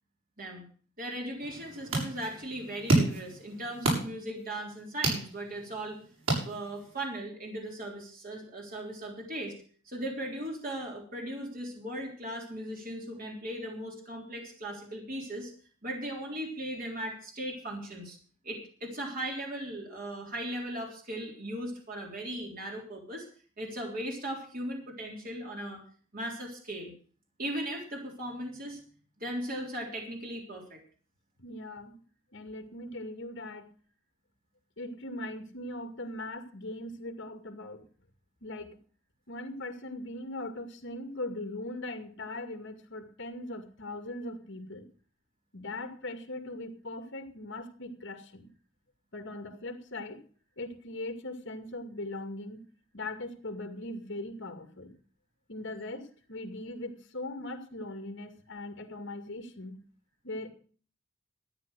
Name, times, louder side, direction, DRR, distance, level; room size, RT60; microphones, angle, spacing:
voice 1, 1.0-6.0 6.4-9.6 9.9-15.5 15.8-18.2 18.4-23.3 23.6-25.8 26.1-26.9 27.4-28.8 29.2-30.8, right 1 dB, 45° right, 0 dB, 3.6 m, -38 dB
sound 1, 1.4-7.1, right 2 dB, 80° right, 7.0 m, -32 dB
voice 2, 31.4-32.0 32.3-33.7 34.8-37.9 38.4-38.8 39.3-44.8 45.5-48.5 49.1-50.2 50.6-52.7 52.9-54.9 55.5-59.8 60.2-60.5, left 2 dB, 60° left, 6 dB, 2.3 m, -40 dB
13.5 x 9.3 x 6.3 m, 0.43 s
head